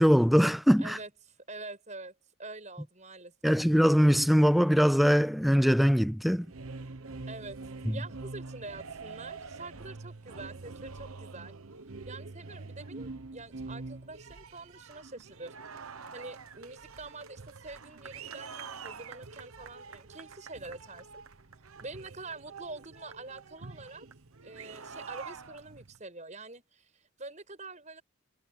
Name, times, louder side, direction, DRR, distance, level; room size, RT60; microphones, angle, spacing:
voice 1, 0.0-1.0 3.4-6.5 7.9-8.0, equal, ahead, 0.3 m, -22 dB
voice 2, 0.8-2.1 2.4-3.6 7.3-7.6 7.8-11.5 12.1-15.5 16.1-21.2 21.8-24.1 24.4-28.0, right 3 dB, 35° right, 6.6 m, -45 dB
sound 1, 6.4-26.0, right 4 dB, 80° right, 1.1 m, -45 dB
head